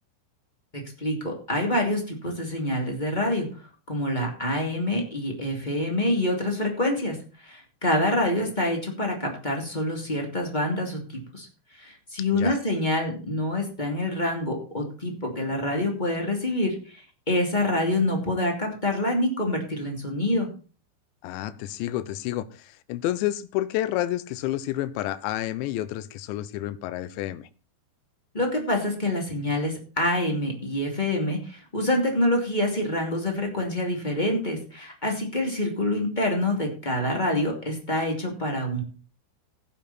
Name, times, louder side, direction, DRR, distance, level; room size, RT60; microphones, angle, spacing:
voice 1, 0.7-3.5 3.9-7.2 7.4-11.5 11.8-20.5 28.3-38.8, left 1 dB, 15° left, 1.6 m, -26 dB
voice 2, 21.2-27.5, left 14 dB, 85° left, 3.1 m, -30 dB
16.0 x 8.4 x 4.2 m
omnidirectional pair, 5.2 m